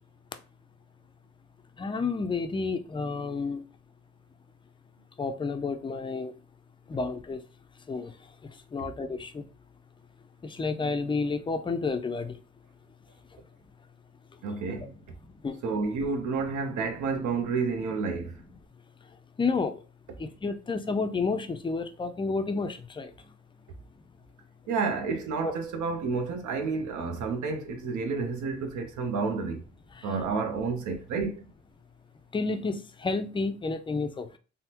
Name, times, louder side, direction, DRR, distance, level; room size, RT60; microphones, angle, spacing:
voice 1, 1.8-3.6 5.2-6.3 6.9-7.4 7.9-8.1 8.7-9.4 10.4-12.4 15.4-15.6 19.4-19.7 20.2-23.1 25.4-25.5 32.3-34.3, left 4 dB, 15° left, 0.4 m, -30 dB
voice 2, 14.4-15.0 15.6-18.4 24.7-29.6 30.0-31.4, right 4 dB, 75° right, 0.8 m, -30 dB
3.4 x 2.1 x 2.8 m
cardioid pair, 90°, 30 cm